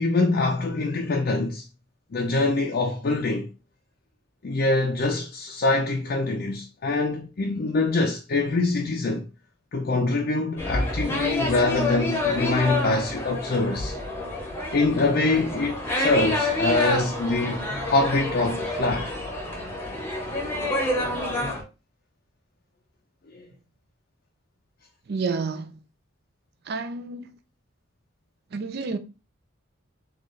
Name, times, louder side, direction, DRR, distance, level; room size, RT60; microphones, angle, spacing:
voice 1, 0.0-1.7 2.1-3.5 4.4-9.3 9.7-14.0 14.7-19.1 23.3-23.5, left 2 dB, 45° left, 0.4 m, -24 dB
sound 1, 10.6-21.6, left 1 dB, 10° left, 0.8 m, -28 dB
voice 2, 25.1-25.8 26.7-27.4 28.5-29.0, right 4 dB, 50° right, 0.4 m, -30 dB
4.3 x 2.4 x 3.1 m
head